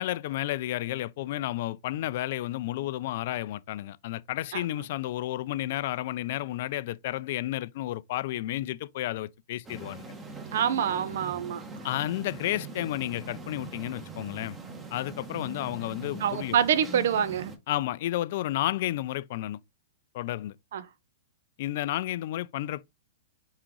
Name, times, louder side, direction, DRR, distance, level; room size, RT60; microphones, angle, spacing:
voice 1, 0.0-10.1 11.8-14.6 14.9-16.6 17.7-19.6 20.1-20.6 21.6-22.9, left 14 dB, 55° left, 0.3 m, -32 dB
sound 1, 9.6-17.6, right 3 dB, 15° right, 1.0 m, -42 dB
voice 2, 10.5-11.6 16.2-17.5 20.7-20.8, right 8 dB, 65° right, 0.5 m, -26 dB
4.8 x 3.6 x 3.1 m
hypercardioid pair, 125°, 0 cm